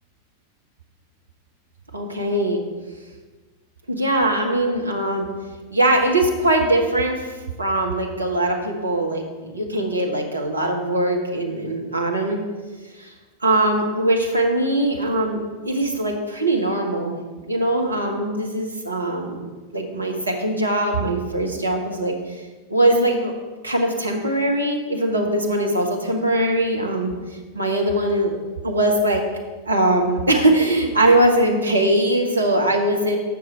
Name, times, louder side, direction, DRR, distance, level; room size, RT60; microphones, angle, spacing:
voice 1, 1.9-2.6 3.9-5.3 5.7-12.4 13.0-13.1 13.4-17.2 17.4-22.1 22.7-23.3 23.6-27.1 27.5-28.4 28.6-29.2 29.7-33.2, right 1 dB, 80° right, 1 dB, 1.1 m, -21 dB
7.3 x 6.3 x 4.4 m, 1.3 s
figure-of-eight pair, 90°, 0 cm